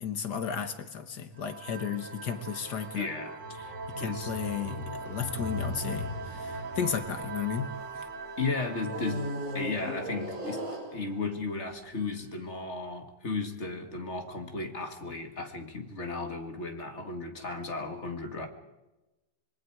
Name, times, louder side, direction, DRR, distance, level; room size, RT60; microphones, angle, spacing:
voice 1, 0.0-3.1 4.0-7.7 7.9-8.0, left 7 dB, 70° left, 9 dB, 1.8 m, -34 dB
sound 1, 1.3-11.7, right 4 dB, 90° right, 2.0 m, -42 dB
voice 2, 2.9-3.4 4.0-4.3 8.4-9.2 9.5-10.6 10.9-18.5, left 3 dB, 40° left, 6 dB, 2.2 m, -35 dB
sound 2, 3.4-8.1 8.8-11.4 12.0-12.2, left 1 dB, 50° right, 6.0 m, -38 dB
25.5 x 22.5 x 4.8 m, 1.0 s
omnidirectional pair, 1.9 m